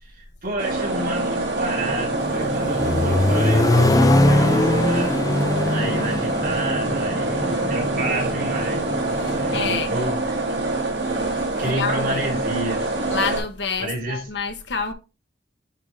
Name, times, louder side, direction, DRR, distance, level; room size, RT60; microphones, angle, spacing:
voice 1, 0.0-5.2 5.7-8.9 9.3-10.6 11.6-12.9 13.8-14.2, right 1 dB, 55° right, 3.0 m, -30 dB
sound 1, 0.6-13.4, right 2 dB, 70° right, 2.2 m, -25 dB
sound 2, 1.8-9.7, equal, 35° left, 2.1 m, -33 dB
Accelerating revving vroom, 2.2-8.2, left 1 dB, 20° left, 0.4 m, -21 dB
voice 2, 5.6-6.1 9.1-9.9 11.6-12.4 13.1-14.9, left 5 dB, 80° left, 1.2 m, -29 dB
9.8 x 3.7 x 3.4 m
head